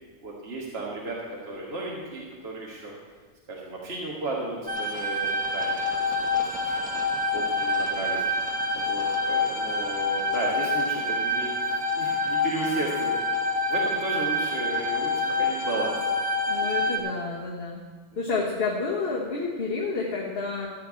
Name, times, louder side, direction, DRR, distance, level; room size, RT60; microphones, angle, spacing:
voice 1, 0.2-1.2 1.5-2.9 3.5-6.7 7.3-8.3 8.7-11.5 11.9-13.1 13.7-15.9 16.6-17.1 18.3-18.4, right 2 dB, 60° right, -3 dB, 1.8 m, -34 dB
sound 1, 4.7-17.0, left 2 dB, 10° right, 1.0 m, -27 dB
voice 2, 16.5-17.8 18.2-20.7, left 4 dB, 60° left, -2 dB, 1.4 m, -29 dB
13.0 x 4.5 x 8.7 m, 1.5 s
omnidirectional pair, 1.2 m